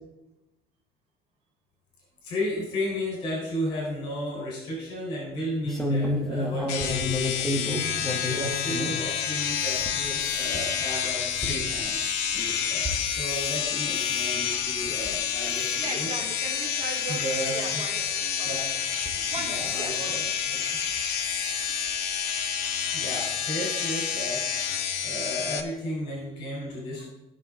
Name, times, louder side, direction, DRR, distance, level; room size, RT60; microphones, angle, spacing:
voice 1, 2.2-12.8 13.2-16.1 16.9-17.8 18.4-18.6 19.4-20.8 22.9-24.4 25.0-27.0, equal, 45° left, -5 dB, 3.7 m, -34 dB
sound 1, 5.7-9.0 9.4-13.6 13.9-14.3 14.9-15.2 15.5-15.8 16.4-16.5 16.8-16.9 18.1-18.2 18.9-19.8 20.9-21.1 21.4-21.5 21.9-22.0, left 1 dB, 5° left, 1.2 m, -32 dB
sound 2, 6.7-25.6, left 8 dB, 90° left, 1.2 m, -29 dB
voice 2, 15.8-17.3 17.5-18.8 19.3-20.3, right 4 dB, 75° right, -6 dB, 3.8 m, -38 dB
17.0 x 6.0 x 3.6 m, 0.98 s
cardioid pair, 170°, 11 cm